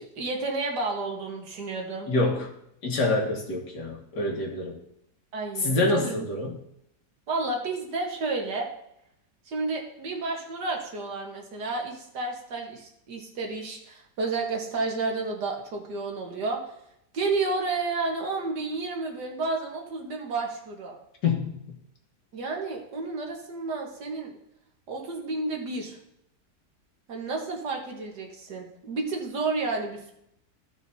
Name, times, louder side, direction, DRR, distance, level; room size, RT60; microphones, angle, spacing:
voice 1, 0.0-2.1 5.3-6.2 7.3-8.7 9.5-16.7 17.1-21.0 22.3-24.3 24.9-26.0 27.1-30.1, right 3 dB, 85° right, 1 dB, 2.0 m, -31 dB
voice 2, 2.1-2.5 2.8-4.8 5.6-6.5 21.2-21.6, left 2 dB, 85° left, 0 dB, 2.2 m, -26 dB
15.0 x 6.0 x 2.7 m, 0.77 s
omnidirectional pair, 1.8 m